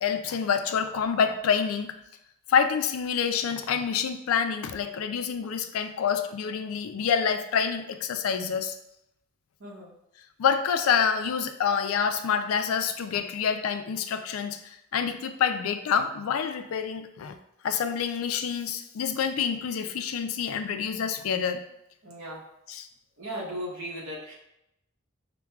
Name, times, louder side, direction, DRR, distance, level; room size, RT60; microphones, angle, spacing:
voice 1, 0.0-1.9 2.5-8.8 10.4-17.4 17.6-21.6 22.7-22.9, left 7 dB, 85° left, 9 dB, 0.4 m, -27 dB
voice 2, 9.6-9.9 22.0-22.5 23.2-24.3, equal, 70° right, -5 dB, 0.9 m, -37 dB
5.8 x 2.2 x 2.3 m, 0.82 s
head